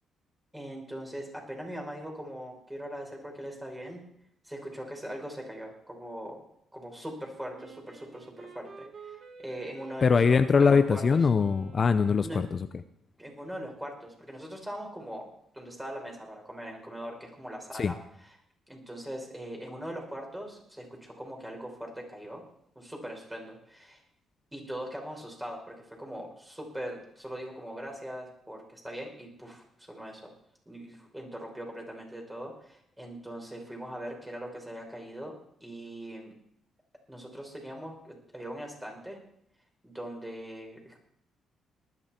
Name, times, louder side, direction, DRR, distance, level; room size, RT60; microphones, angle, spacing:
voice 1, 0.5-4.0 4.4-6.4 6.7-11.2 12.2-12.5 13.2-15.2 15.5-18.0 18.2-18.3 18.7-22.4 22.8-24.0 24.5-30.3 30.7-35.3 35.6-36.3 37.1-39.2 39.8-41.0, equal, 10° right, 1 dB, 5.4 m, -41 dB
Wind instrument woodwind instrument, 7.5-12.6, right 5 dB, 55° right, 2.0 m, -50 dB
voice 2, 10.0-12.6 17.8-17.9, left 5 dB, 40° left, 11 dB, 0.6 m, -22 dB
19.0 x 12.0 x 4.4 m, 0.71 s
cardioid pair, 90°, 0 cm